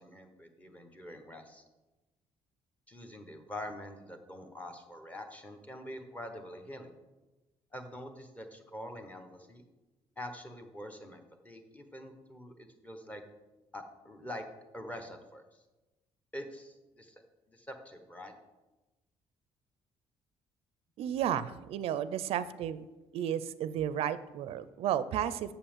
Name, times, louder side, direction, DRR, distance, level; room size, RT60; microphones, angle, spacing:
voice 1, 0.0-1.6 2.9-6.9 7.7-9.6 10.2-13.2 13.7-14.5 14.7-15.6 16.3-17.2 17.5-18.3, left 1 dB, 15° left, 6 dB, 0.9 m, -45 dB
voice 2, 21.0-22.9 23.1-25.5, right 10 dB, 70° right, 14 dB, 0.4 m, -33 dB
7.1 x 5.6 x 7.1 m, 1.1 s
cardioid pair, 160°, 11 cm